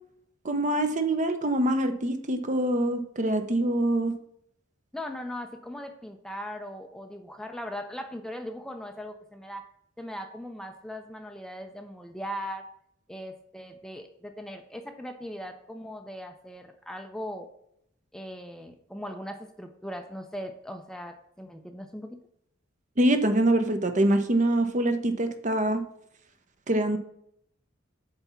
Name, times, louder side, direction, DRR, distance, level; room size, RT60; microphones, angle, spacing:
voice 1, 0.4-4.2 23.0-25.8 26.7-27.0, right 1 dB, 40° right, 8 dB, 0.8 m, -24 dB
voice 2, 4.9-9.7 10.0-12.7 13.1-17.5 18.1-22.2, equal, 5° left, 5 dB, 0.6 m, -39 dB
8.1 x 3.5 x 5.6 m, 0.72 s
head